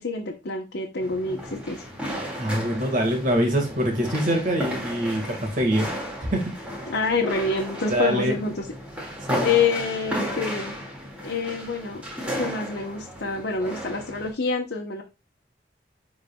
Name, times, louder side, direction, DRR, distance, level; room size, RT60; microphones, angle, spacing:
voice 1, 0.0-1.9 6.9-8.7 9.4-10.7 11.2-12.0 12.3-15.0, left 4 dB, 85° left, 0 dB, 0.9 m, -27 dB
sound 1, 1.0-14.3, equal, 5° right, 2.0 m, -34 dB
voice 2, 2.4-5.9 6.3-6.5 7.9-8.4 9.3-9.5, equal, 45° right, 1 dB, 1.7 m, -24 dB
10.5 x 4.0 x 2.3 m, 0.27 s
head